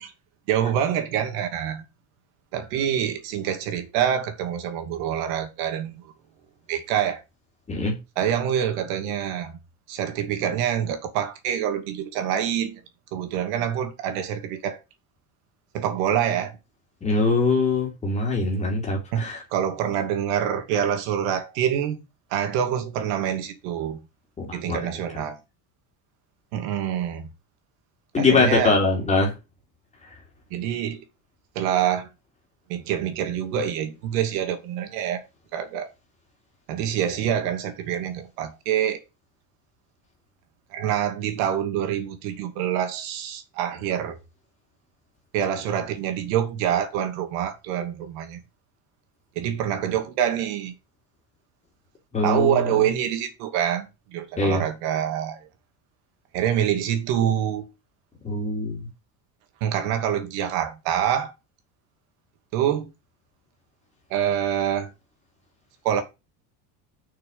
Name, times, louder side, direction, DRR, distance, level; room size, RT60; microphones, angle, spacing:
voice 1, 0.5-1.8 2.5-6.1 6.7-7.2 8.2-9.6 9.9-12.8 13.1-14.8 15.7-16.6 19.1-22.0 22.3-24.0 24.5-25.4 26.5-27.3 28.2-28.8 30.5-31.0 31.5-32.1 32.7-35.2 35.5-35.9 36.7-39.0 40.7-44.2 45.3-48.4 49.4-50.7 52.2-55.5 56.3-57.7 59.6-61.3 62.5-62.9 64.1-64.9 65.8-66.0, right 9 dB, 85° right, 2.5 m, -26 dB
voice 2, 17.0-19.4 24.4-24.8 28.1-29.3 52.1-52.7 54.4-54.6 58.2-58.8, left 3 dB, 15° left, 3.0 m, -22 dB
6.7 x 6.3 x 5.6 m
cardioid pair, 180°, 45 cm